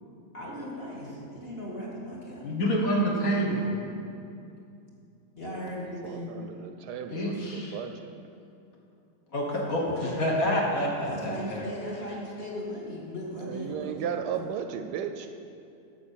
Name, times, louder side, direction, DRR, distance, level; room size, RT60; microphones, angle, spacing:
voice 1, 0.3-2.4 5.4-6.3 7.3-7.5 9.7-10.4 11.0-14.1, equal, 35° left, -4 dB, 1.9 m, -37 dB
voice 2, 2.4-3.7 7.1-7.8 9.3-11.6, equal, 55° left, -2 dB, 1.7 m, -27 dB
voice 3, 6.0-8.1 13.4-15.3, right 8 dB, 75° right, 7 dB, 1.1 m, -35 dB
8.6 x 6.4 x 7.3 m, 2.6 s
omnidirectional pair, 1.9 m